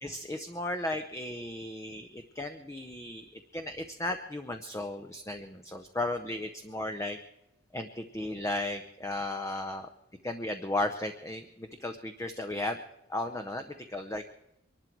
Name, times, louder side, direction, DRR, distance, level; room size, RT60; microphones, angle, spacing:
voice 1, 0.0-3.2 3.5-7.2 7.7-9.9 10.2-12.8 13.1-14.2, left 1 dB, 15° left, 7 dB, 0.7 m, -35 dB
23.5 x 12.0 x 4.5 m, 0.83 s
head